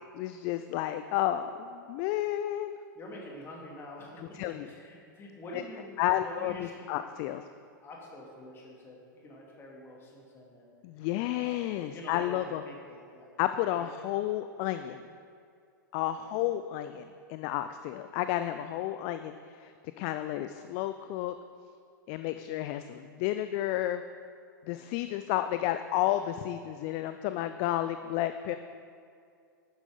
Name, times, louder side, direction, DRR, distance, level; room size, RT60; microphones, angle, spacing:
voice 1, 0.1-2.8 4.4-4.7 5.5-5.6 6.0-7.4 10.8-12.6 13.4-15.0 15.9-21.3 22.1-24.0 24.7-28.6, left 13 dB, 35° left, 10 dB, 0.4 m, -31 dB
voice 2, 2.9-6.9 7.8-10.7 11.1-13.3 13.7-13.9 16.2-16.3 24.7-24.9, left 1 dB, 20° left, -2 dB, 2.6 m, -47 dB
12.0 x 9.6 x 3.8 m, 2.3 s
figure-of-eight pair, 100°, 11 cm